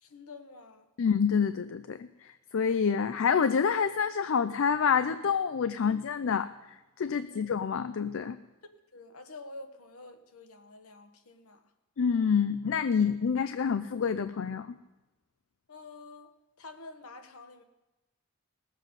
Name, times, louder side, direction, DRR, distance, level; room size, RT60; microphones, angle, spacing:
voice 1, 0.0-0.9 7.2-7.5 8.9-11.6 15.7-17.6, left 3 dB, 75° left, 8 dB, 1.1 m, -48 dB
voice 2, 1.0-6.5 7.0-8.4 12.0-14.7, left 6 dB, 60° left, 12 dB, 0.4 m, -27 dB
19.5 x 7.6 x 5.3 m, 1.1 s
head